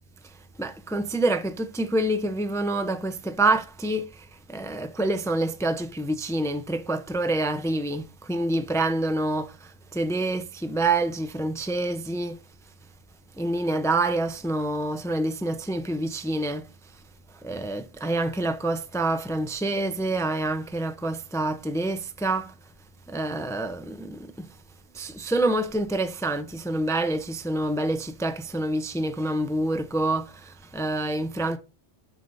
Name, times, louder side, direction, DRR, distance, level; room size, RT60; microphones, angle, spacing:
voice 1, 0.2-12.4 13.4-16.7 16.9-17.0 17.3-22.5 23.1-24.5 24.9-31.6, right 2 dB, 5° left, 0.4 m, -27 dB
9.6 x 6.7 x 2.6 m
omnidirectional pair, 1.2 m